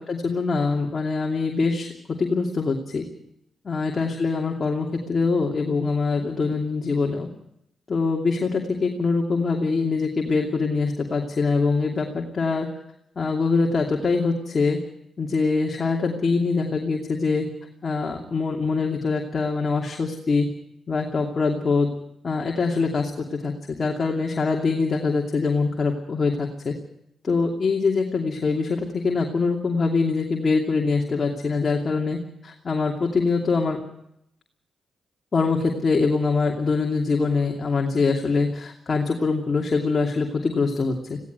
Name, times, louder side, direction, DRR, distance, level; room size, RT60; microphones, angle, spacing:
voice 1, 0.0-3.0 3.6-7.3 7.9-12.7 13.2-14.8 15.2-17.5 17.8-20.5 20.9-21.9 22.2-26.7 27.2-33.8 35.3-41.2, left 4 dB, 45° left, 1 dB, 2.7 m, -24 dB
17.5 x 16.5 x 9.4 m, 0.77 s
cardioid pair, 60°, 0 cm